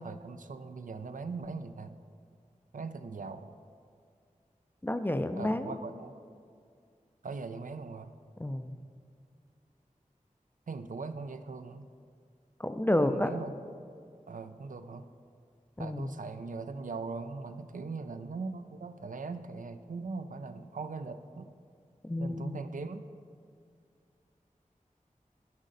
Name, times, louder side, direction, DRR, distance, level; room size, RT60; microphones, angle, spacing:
voice 1, 0.0-2.0 2.7-3.5 5.4-6.2 7.2-8.1 10.7-11.9 13.0-13.6 14.3-15.1 15.8-21.5 22.2-23.0, right 4 dB, 70° right, 9 dB, 0.4 m, -40 dB
voice 2, 4.8-5.7 8.4-8.7 12.6-13.3 15.8-16.1 22.0-22.6, left 1 dB, 15° left, 9 dB, 0.4 m, -30 dB
10.5 x 5.1 x 4.0 m, 2.3 s
wide cardioid pair, 50°, 14 cm